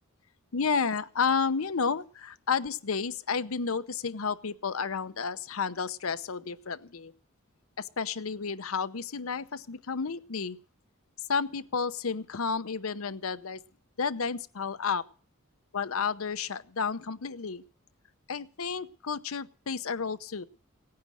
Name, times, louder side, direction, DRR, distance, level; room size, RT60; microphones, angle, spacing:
voice 1, 0.5-7.1 7.8-10.6 11.3-13.6 14.0-15.0 15.7-17.6 18.3-20.4, left 5 dB, 80° left, 14 dB, 0.8 m, -31 dB
17.5 x 9.5 x 6.4 m, 0.42 s
head